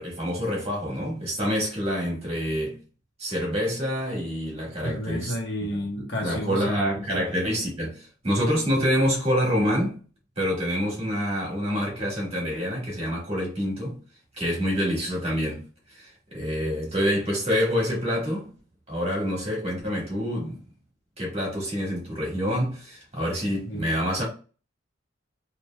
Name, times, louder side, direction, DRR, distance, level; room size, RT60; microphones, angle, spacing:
voice 1, 0.0-2.8 3.2-5.3 6.2-10.0 10.4-14.0 14.4-18.5 18.9-20.5 21.2-24.2, equal, 30° right, 1.6 m, -27 dB
voice 2, 4.8-6.8 7.1-7.3 23.6-23.9, equal, 60° left, 1.3 m, -31 dB
3.3 x 2.8 x 2.2 m
head